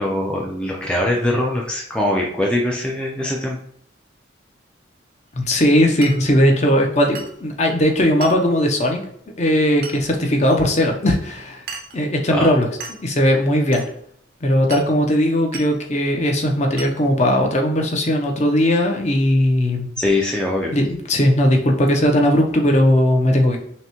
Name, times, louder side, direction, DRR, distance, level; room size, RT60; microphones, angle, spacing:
voice 1, 0.0-3.6 12.3-12.5 20.0-20.7, left 1 dB, 5° left, -2 dB, 0.4 m, -22 dB
voice 2, 5.3-9.0 9.4-11.6 11.9-12.7 13.0-13.8 14.4-19.9 20.7-23.6, left 1 dB, 35° left, 2 dB, 0.7 m, -18 dB
Glass, 6.0-6.2 7.1-7.4 8.2-8.5 9.8-10.0 10.5-10.6 11.7-12.0 12.8-13.0 13.7-13.9 14.7-14.9 15.5-15.7 16.8-17.0, right 4 dB, 50° right, 0.6 m, -34 dB
5.7 x 2.2 x 2.9 m, 0.66 s
head